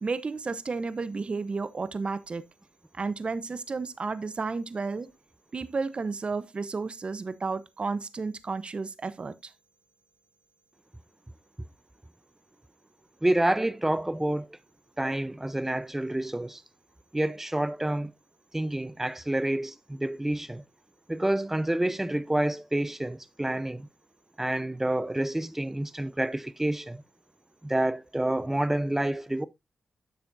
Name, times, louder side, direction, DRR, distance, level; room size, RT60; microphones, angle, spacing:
voice 1, 0.0-2.4 2.9-5.1 5.5-9.5, right 4 dB, 45° right, 0.9 m, -32 dB
voice 2, 13.2-14.6 15.0-16.6 17.1-18.1 18.5-20.6 21.1-23.9 24.4-27.0 27.6-29.5, right 1 dB, 10° right, 0.7 m, -28 dB
10.0 x 7.0 x 2.7 m
cardioid pair, 60°, 3 cm